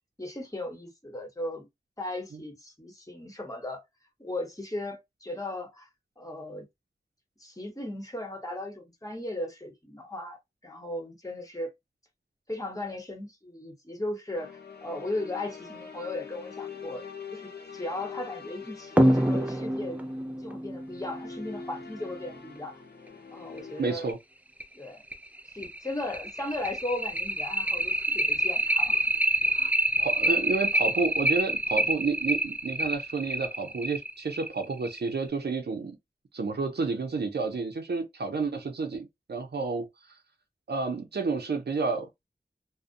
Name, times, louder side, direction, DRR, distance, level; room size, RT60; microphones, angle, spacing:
voice 1, 0.2-1.7 2.0-3.8 4.2-5.9 6.2-6.7 7.4-11.7 12.5-17.0 17.3-20.0 20.4-22.8 23.3-24.2 24.7-25.0 25.5-29.0 29.5-29.7, left 1 dB, 20° left, 1.0 m, -37 dB
sound 1, 14.3-24.1, left 6 dB, 85° left, 0.7 m, -44 dB
sound 2, 19.0-22.1 23.6-23.7 24.1-24.2 24.6-24.7 25.1-35.2, right 1 dB, 10° right, 0.4 m, -27 dB
voice 2, 23.8-24.2 30.0-35.9 36.3-39.9 40.7-42.1, right 4 dB, 85° right, 0.5 m, -30 dB
2.5 x 2.1 x 2.5 m
wide cardioid pair, 50°, 17 cm